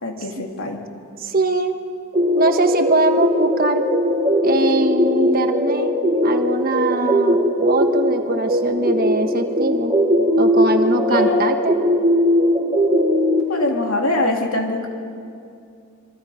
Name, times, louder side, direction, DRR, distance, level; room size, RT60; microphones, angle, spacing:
voice 1, 0.0-0.8 10.8-11.4 13.5-14.9, left 2 dB, 85° left, 1 dB, 2.9 m, -23 dB
voice 2, 1.2-1.8 2.4-3.9 4.4-9.9 10.4-11.8, right 2 dB, 45° right, 6 dB, 1.3 m, -22 dB
sound 1, 2.1-13.4, equal, 20° right, 4.4 m, -19 dB
26.5 x 23.5 x 5.1 m, 2.4 s
head